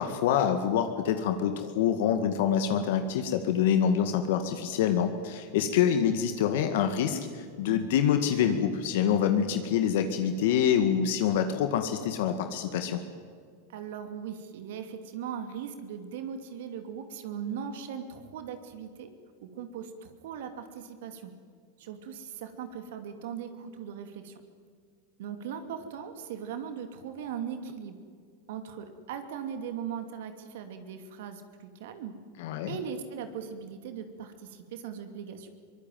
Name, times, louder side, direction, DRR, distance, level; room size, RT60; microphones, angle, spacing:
voice 1, 0.0-13.0 32.4-32.8, left 8 dB, 70° left, 7 dB, 1.9 m, -26 dB
voice 2, 13.7-19.1 19.4-21.3 21.8-24.3 25.2-28.0 28.5-32.2 32.7-35.5, right 7 dB, 70° right, 7 dB, 2.6 m, -39 dB
23.5 x 19.0 x 9.3 m, 2.1 s
hypercardioid pair, 115°, 0 cm